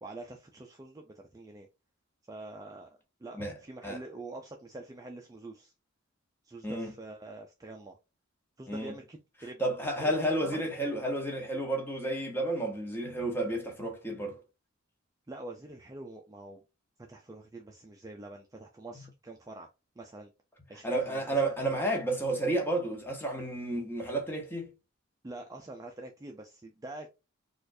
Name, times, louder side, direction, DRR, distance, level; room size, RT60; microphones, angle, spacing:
voice 1, 0.0-1.7 2.3-2.9 3.2-5.7 6.4-8.0 8.6-9.6 10.0-10.1 10.4-10.6 15.3-16.6 17.1-19.7 20.0-20.3 20.7-21.5 25.2-27.1, right 2 dB, 15° right, 0.3 m, -45 dB
voice 2, 9.6-14.4 20.8-24.7, right 1 dB, 10° left, 0.9 m, -31 dB
4.2 x 2.4 x 2.6 m
head